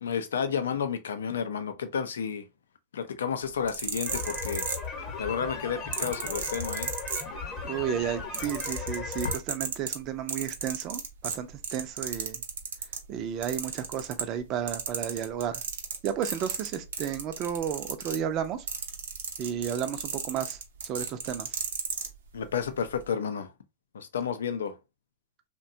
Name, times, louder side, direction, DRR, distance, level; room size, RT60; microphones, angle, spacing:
voice 1, 0.0-2.4 2.9-4.7 5.2-6.9 22.3-23.5 23.9-24.8, left 7 dB, 90° left, 0.4 m, -31 dB
sound 1, 3.5-5.2 5.9-7.7 8.0-13.0 13.4-14.4 14.7-22.1 22.8-23.0, right 6 dB, 80° right, 0.6 m, -34 dB
sound 2, 4.1-9.4, left 4 dB, 40° left, 0.9 m, -37 dB
voice 2, 7.6-12.4 13.1-15.6 16.0-18.7 19.4-21.5, right 9 dB, 40° right, 0.4 m, -33 dB
2.7 x 2.2 x 2.6 m
hypercardioid pair, 120°, 0 cm